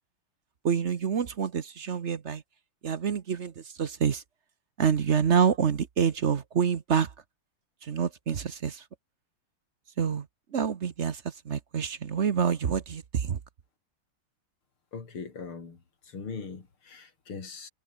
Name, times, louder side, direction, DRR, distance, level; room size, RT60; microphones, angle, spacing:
voice 1, 0.6-2.4 2.8-4.2 4.8-7.1 7.8-8.8 10.0-10.3 10.5-13.4, right 7 dB, 45° right, 0.9 m, -27 dB
voice 2, 14.9-15.8 16.1-17.7, left 5 dB, 80° left, 4.3 m, -40 dB
omnidirectional pair, 2.3 m